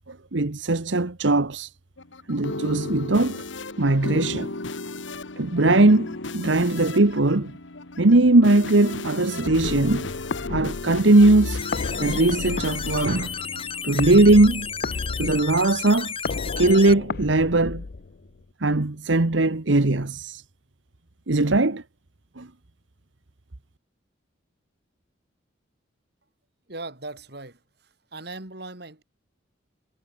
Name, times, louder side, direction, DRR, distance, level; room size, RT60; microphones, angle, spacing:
voice 1, 0.0-1.7 2.3-3.4 3.8-4.5 5.4-7.5 8.0-10.1 10.5-11.6 12.0-13.3 13.8-14.7 15.2-16.1 16.6-17.8 18.6-20.4 21.3-21.8 22.4-22.5, right 2 dB, 75° right, 1.3 m, -20 dB
sound 1, 2.0-14.5, left 2 dB, 75° left, 1.9 m, -35 dB
sound 2, 9.5-18.4, left 4 dB, 55° left, 0.5 m, -33 dB
sound 3, 11.6-16.9, left 7 dB, 30° left, 4.2 m, -33 dB
voice 2, 26.7-27.6 28.1-29.0, right 2 dB, 55° right, 2.7 m, -38 dB
head